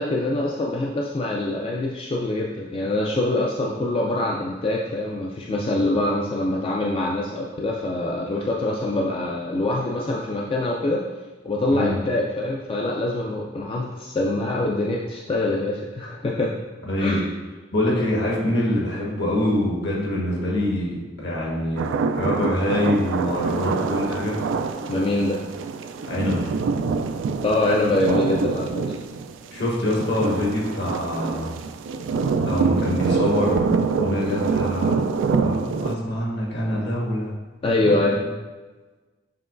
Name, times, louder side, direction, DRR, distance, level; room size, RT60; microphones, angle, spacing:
voice 1, 0.0-11.1 11.4-16.6 17.0-17.2 24.9-25.4 27.4-28.9 37.6-38.2, left 2 dB, 30° left, -2 dB, 0.3 m, -24 dB
voice 2, 16.9-17.2 17.7-21.8 22.1-24.4 26.0-26.6 29.5-31.5 32.4-35.0 35.3-37.3 37.8-38.2, left 1 dB, 65° left, -4 dB, 1.4 m, -25 dB
sound 1, 21.8-36.0, right 4 dB, 80° right, 0.3 m, -25 dB
6.7 x 3.0 x 2.5 m, 1.2 s
head